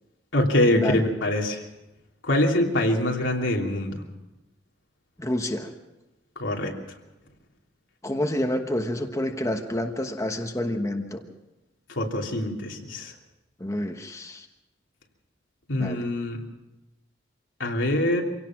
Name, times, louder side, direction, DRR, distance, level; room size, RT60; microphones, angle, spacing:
voice 1, 0.3-1.6 2.2-4.0 6.4-6.7 11.9-13.1 15.7-16.4 17.6-18.2, left 1 dB, 90° left, 0 dB, 3.0 m, -24 dB
voice 2, 5.2-5.7 8.0-11.3 13.6-14.5 15.8-16.0, left 1 dB, 15° left, 4 dB, 1.2 m, -28 dB
25.0 x 17.0 x 6.0 m, 0.99 s
head